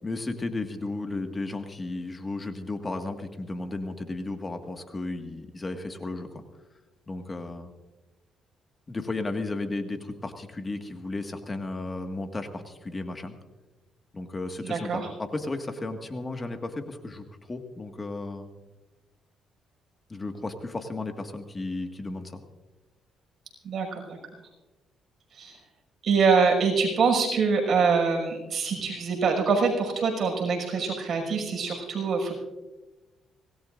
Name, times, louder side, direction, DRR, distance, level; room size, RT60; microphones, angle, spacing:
voice 1, 0.0-6.4 7.1-7.7 8.9-13.4 14.1-18.5 20.1-22.4, left 2 dB, 25° left, 5 dB, 1.8 m, -34 dB
voice 2, 14.6-15.1 23.6-24.2 25.3-25.6 26.0-32.3, right 5 dB, 55° right, 0 dB, 5.9 m, -24 dB
25.5 x 18.5 x 2.6 m, 1.1 s
cardioid pair, 90°, 0 cm